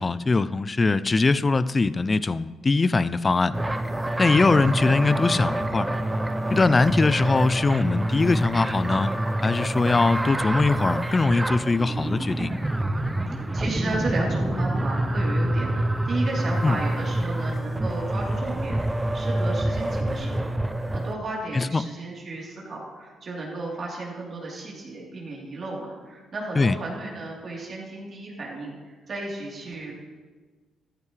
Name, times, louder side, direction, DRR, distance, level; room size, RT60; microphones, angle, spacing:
voice 1, 0.0-3.6 4.2-5.9 6.5-9.1 9.4-12.5 16.6-16.8 21.5-21.8 26.6-26.8, left 3 dB, 30° left, 16 dB, 0.4 m, -21 dB
sound 1, 3.5-21.1, right 1 dB, 15° right, 0.7 m, -27 dB
voice 2, 13.3-18.8 19.1-29.9, right 2 dB, 50° right, -3 dB, 3.4 m, -34 dB
14.0 x 12.5 x 3.3 m, 1.4 s
cardioid pair, 90°, 0 cm